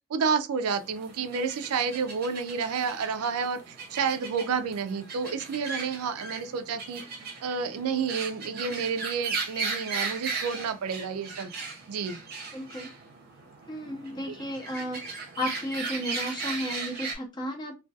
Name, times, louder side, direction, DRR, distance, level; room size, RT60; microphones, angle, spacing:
voice 1, 0.1-7.0 7.4-11.5 11.9-12.2 14.1-14.4, right 5 dB, 80° right, 0.4 m, -30 dB
sound 1, 0.7-17.1, right 4 dB, 45° right, 0.7 m, -37 dB
voice 2, 12.5-12.9 13.7-15.0 15.4-17.8, equal, 20° left, 0.5 m, -33 dB
2.3 x 2.2 x 2.5 m
head